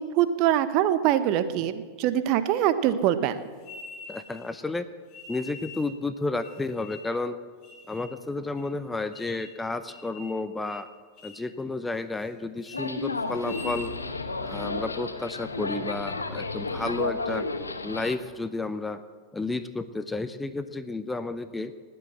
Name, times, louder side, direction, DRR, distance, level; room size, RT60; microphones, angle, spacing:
voice 1, 0.0-3.5, right 11 dB, 40° right, 12 dB, 0.9 m, -24 dB
sound 1, 3.6-4.5 5.1-5.9 6.4-7.2 7.6-8.1 8.6-8.7 9.1-9.6 9.9-10.4 10.6-10.9 11.2-11.5 11.9-12.3 12.6-12.8 13.3-13.9, left 3 dB, 35° left, 3.2 m, -44 dB
voice 2, 4.1-4.9 5.3-7.4 7.9-10.9 11.2-13.9 14.4-17.5 17.8-19.0 19.3-21.7, left 3 dB, 10° left, 12 dB, 0.7 m, -32 dB
sound 2, 12.7-18.2, left 3 dB, 80° left, 1.0 m, -32 dB
19.5 x 7.9 x 7.6 m, 1.5 s
figure-of-eight pair, 90°, 0 cm